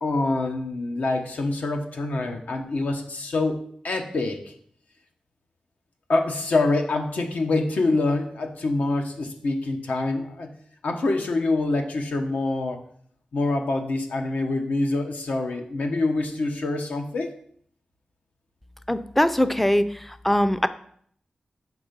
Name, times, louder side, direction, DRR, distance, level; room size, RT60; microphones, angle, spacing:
voice 1, 0.0-4.5 6.1-10.5 10.8-12.8 13.3-17.3, left 2 dB, 85° left, 4 dB, 1.0 m, -25 dB
voice 2, 18.9-20.7, left 1 dB, 5° left, 12 dB, 0.3 m, -22 dB
6.0 x 4.8 x 5.2 m, 0.62 s
wide cardioid pair, 110°, 3 cm